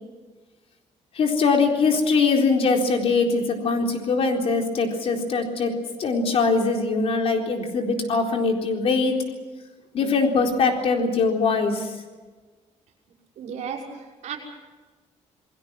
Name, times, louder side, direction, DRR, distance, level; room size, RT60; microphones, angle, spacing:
voice 1, 1.2-5.7 6.0-9.2 9.9-11.9, left 4 dB, 55° left, 2 dB, 4.0 m, -22 dB
voice 2, 13.4-14.4, right 7 dB, 70° right, -2 dB, 6.0 m, -34 dB
29.0 x 20.5 x 6.1 m, 1.3 s
cardioid pair, 165°, 12 cm